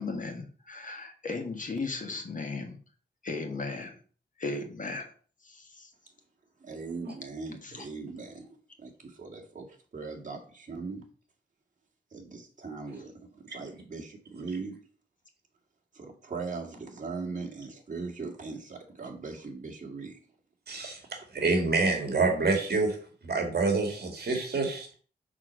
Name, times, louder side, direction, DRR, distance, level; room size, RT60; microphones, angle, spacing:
voice 1, 0.0-2.8 3.2-4.0 4.4-5.1 5.4-5.9 7.6-7.8, left 3 dB, 45° left, 1.5 m, -36 dB
voice 2, 6.6-8.5 8.8-9.7 9.9-11.0 12.1-14.8 15.9-20.2, right 4 dB, 45° right, 1.9 m, -39 dB
voice 3, 20.7-21.0 21.3-23.0 23.2-24.9, right 3 dB, 60° right, 2.0 m, -27 dB
6.3 x 4.4 x 6.3 m
wide cardioid pair, 160°, 18 cm